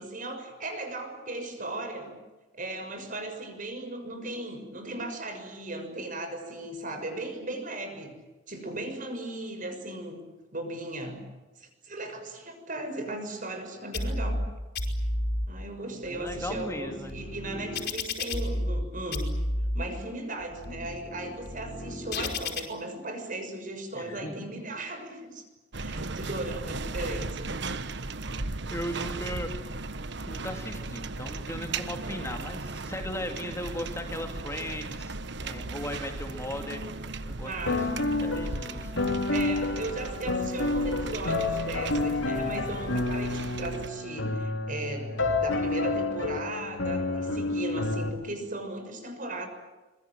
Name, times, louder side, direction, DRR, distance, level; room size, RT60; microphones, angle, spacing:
voice 1, 0.0-2.2 2.5-8.1 8.5-10.2 10.5-11.2 11.6-14.4 15.5-19.3 19.7-25.4 25.7-27.5 37.4-37.9 39.3-45.1 45.4-49.5, right 2 dB, 45° right, 6 dB, 6.6 m, -37 dB
sound 1, 13.9-14.5 14.7-15.5 16.0-18.8 19.1-19.8 20.4-22.6, left 1 dB, 60° left, 5.3 m, -32 dB
voice 2, 15.9-17.2 23.9-24.3 28.7-29.5 30.3-36.8 37.3-38.9, left 1 dB, 15° left, 4 dB, 2.6 m, -37 dB
sound 2, 25.7-43.9, right 3 dB, 65° right, 1.3 m, -37 dB
sound 3, 37.7-48.1, left 2 dB, 90° left, 3.4 m, -29 dB
26.0 x 23.0 x 9.2 m, 1.2 s
head